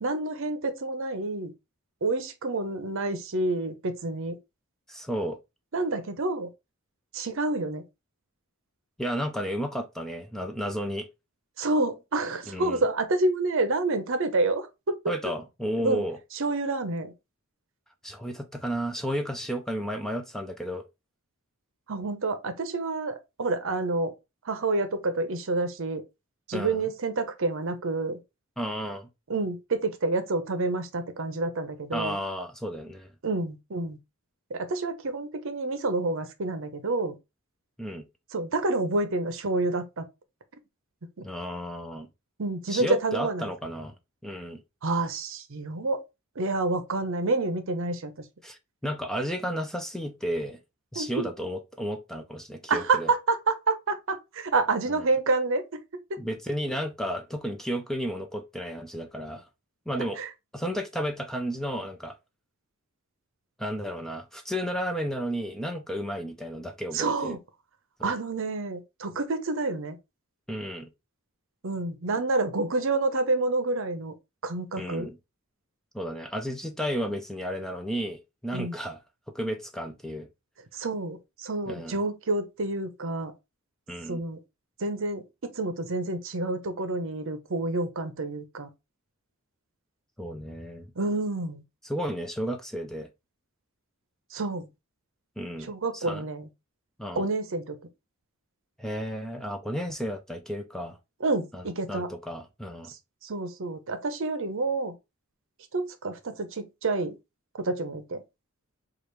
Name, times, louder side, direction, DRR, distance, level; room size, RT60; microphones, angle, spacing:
voice 1, 0.0-1.5 2.0-4.4 5.7-6.5 7.1-7.8 11.6-15.0 15.8-16.0 16.3-17.1 21.9-24.1 24.4-26.0 26.5-28.2 29.3-32.2 33.2-34.0 34.5-37.2 38.3-40.0 41.2-41.3 42.4-43.5 44.8-46.0 46.4-48.1 51.0-51.1 52.7-55.6 56.1-56.2 60.0-60.3 66.9-67.4 68.0-70.0 71.6-74.1 74.4-75.1 78.5-78.8 80.7-83.3 84.1-84.4 84.8-88.7 91.0-91.6 94.3-94.7 95.7-96.5 97.2-97.8 101.2-102.1 102.9-103.0 103.2-104.9 105.7-107.2 107.6-108.2, right 2 dB, 65° right, 0.7 m, -28 dB
voice 2, 4.9-5.4 9.0-11.1 12.5-12.8 15.1-16.2 18.0-20.8 26.5-26.9 28.6-29.1 31.9-33.1 37.8-38.1 41.2-42.1 42.7-44.0 44.2-44.6 48.4-50.6 50.9-53.1 56.2-59.5 59.9-60.2 60.5-62.2 63.6-67.4 68.0-68.1 70.5-70.9 74.8-75.2 75.9-79.0 79.3-80.3 81.7-82.0 83.9-84.2 90.2-90.9 91.8-93.1 95.4-96.3 97.0-97.2 98.8-101.0 101.5-102.9, equal, ahead, 0.4 m, -33 dB
4.8 x 2.5 x 3.2 m
head